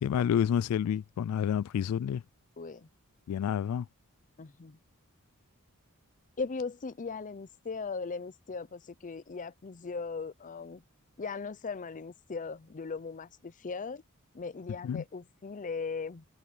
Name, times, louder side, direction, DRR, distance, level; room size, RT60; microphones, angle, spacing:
voice 1, 0.0-2.2 3.3-3.9 14.8-15.0, left 8 dB, 85° left, 0.3 m, -29 dB
voice 2, 2.6-2.9 4.4-4.8 6.4-10.8 11.2-14.0 14.3-16.3, left 4 dB, 35° left, 0.6 m, -38 dB
head